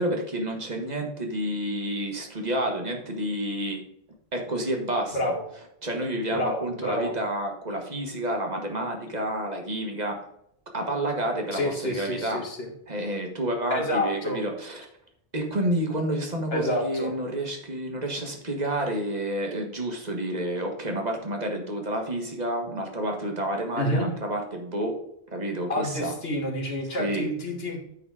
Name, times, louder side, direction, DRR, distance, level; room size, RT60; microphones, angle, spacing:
voice 1, 0.0-3.8 4.3-5.3 5.8-10.2 10.7-12.5 12.9-14.9 15.3-25.0 25.3-26.1 27.0-27.2, right 1 dB, 40° right, 2 dB, 1.6 m, -29 dB
voice 2, 6.3-7.1 11.5-12.7 13.7-14.4 16.5-17.1 23.8-24.1 25.7-27.8, left 1 dB, 65° left, 2 dB, 2.0 m, -28 dB
9.2 x 4.1 x 4.9 m, 0.74 s
omnidirectional pair, 1.1 m